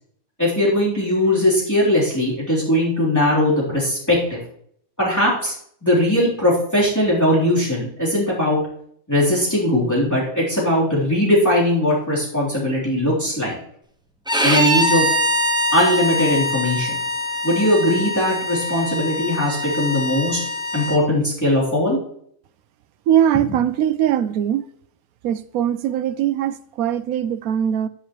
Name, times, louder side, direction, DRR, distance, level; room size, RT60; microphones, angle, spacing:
voice 1, 0.4-4.4 5.0-5.5 5.8-8.6 9.1-13.5 14.4-15.1 15.7-17.0 17.4-20.4 20.7-22.0, left 1 dB, 10° left, 3.6 m, -19 dB
Bowed string instrument, 14.3-21.0, left 1 dB, 5° right, 0.9 m, -23 dB
voice 2, 23.1-24.6 25.2-27.9, right 10 dB, 85° right, 1.1 m, -21 dB
10.5 x 10.5 x 3.1 m
omnidirectional pair, 1.5 m